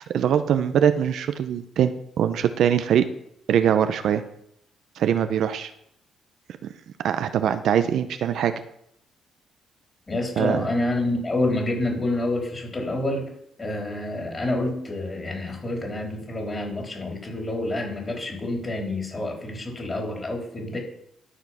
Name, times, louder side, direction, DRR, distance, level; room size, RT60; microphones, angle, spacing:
voice 1, 0.1-3.1 3.5-4.2 5.0-5.7 6.6-6.7 7.0-8.5 10.4-10.7, right 9 dB, 70° right, 10 dB, 0.7 m, -22 dB
voice 2, 10.1-13.3 13.6-20.8, left 2 dB, 25° left, 0 dB, 3.7 m, -28 dB
12.5 x 5.0 x 5.7 m, 0.73 s
cardioid pair, 90°, 0 cm